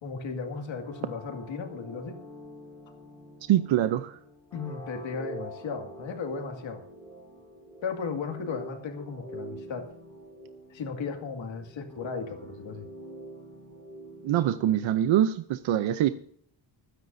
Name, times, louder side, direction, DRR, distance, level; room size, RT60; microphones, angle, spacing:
voice 1, 0.0-2.2 4.5-6.8 7.8-9.9 10.7-12.9, left 5 dB, 65° left, 4 dB, 2.3 m, -35 dB
sound 1, 0.8-15.4, right 1 dB, 5° left, 4.9 m, -46 dB
voice 2, 3.5-4.2 14.2-16.1, right 11 dB, 70° right, 10 dB, 0.7 m, -24 dB
25.5 x 10.0 x 2.7 m, 0.63 s
cardioid pair, 145°, 48 cm